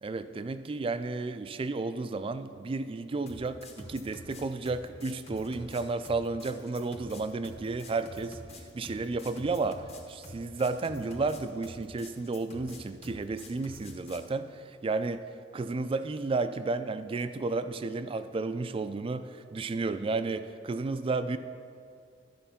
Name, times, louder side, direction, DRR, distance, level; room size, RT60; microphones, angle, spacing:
voice 1, 0.0-15.2 15.5-21.4, right 3 dB, 30° right, 11 dB, 0.3 m, -32 dB
sound 1, 3.3-14.3, left 2 dB, 35° left, 0.9 m, -47 dB
11.5 x 4.5 x 5.7 m, 2.2 s
head